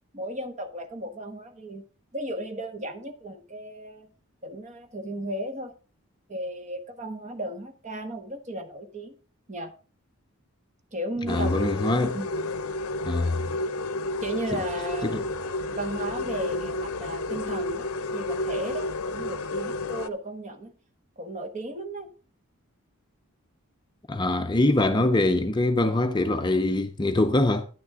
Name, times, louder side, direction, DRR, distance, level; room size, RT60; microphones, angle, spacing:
voice 1, 0.1-1.8 2.1-4.1 4.4-5.7 6.3-9.1 9.5-9.7 10.9-11.6 12.1-12.4 14.2-15.2 15.7-20.7 21.2-22.1, right 1 dB, 30° right, 1.2 m, -35 dB
sound 1, 11.3-20.1, left 2 dB, 75° left, 0.6 m, -31 dB
voice 2, 11.3-12.2 13.1-13.4 14.5-14.6 15.0-15.2 24.1-27.7, left 2 dB, 20° left, 0.5 m, -23 dB
10.5 x 9.4 x 3.6 m
head